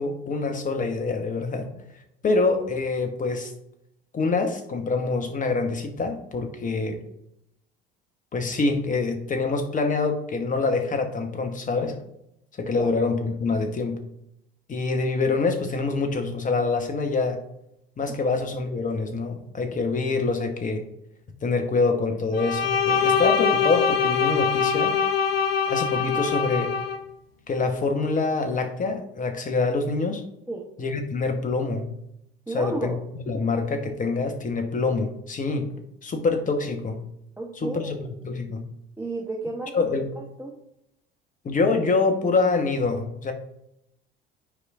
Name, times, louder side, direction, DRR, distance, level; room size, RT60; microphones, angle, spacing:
voice 1, 0.0-1.7 2.2-3.5 4.1-7.0 8.3-12.0 12.6-14.0 14.7-17.4 18.0-20.8 21.4-25.0 25.7-26.7 27.5-30.2 30.8-31.9 32.5-35.7 36.0-37.0 37.6-38.0 38.2-38.6 39.7-40.0 41.4-43.3, left 3 dB, 25° left, 5 dB, 1.1 m, -25 dB
Bowed string instrument, 22.3-27.0, left 6 dB, 85° left, 0.6 m, -23 dB
voice 2, 32.5-33.0 37.4-38.1 39.0-39.8 40.1-40.5, right 2 dB, 5° right, -2 dB, 0.9 m, -33 dB
9.8 x 4.8 x 2.5 m, 0.79 s
figure-of-eight pair, 60°, 29 cm